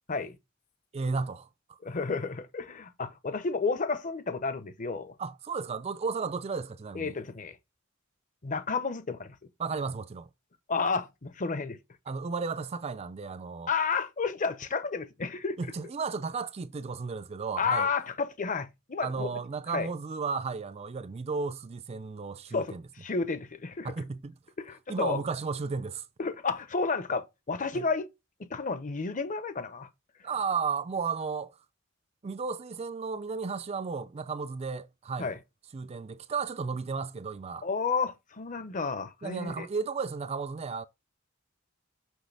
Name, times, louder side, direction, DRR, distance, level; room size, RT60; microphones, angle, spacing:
voice 1, 0.9-1.8 5.2-7.1 9.6-10.3 12.1-13.7 15.6-17.9 19.0-22.8 23.8-24.4 24.9-26.1 27.7-27.8 30.2-31.6 32.2-35.3 35.7-37.7 39.2-40.9, right 5 dB, 30° right, 0.4 m, -34 dB
voice 2, 1.8-5.2 6.9-7.6 8.4-9.4 10.7-11.8 13.7-15.6 17.6-19.3 19.7-19.9 22.5-23.9 24.6-25.2 26.2-28.1 28.4-29.9 35.2-35.4 37.6-39.7, left 4 dB, 40° left, 0.8 m, -31 dB
6.2 x 5.8 x 3.3 m
head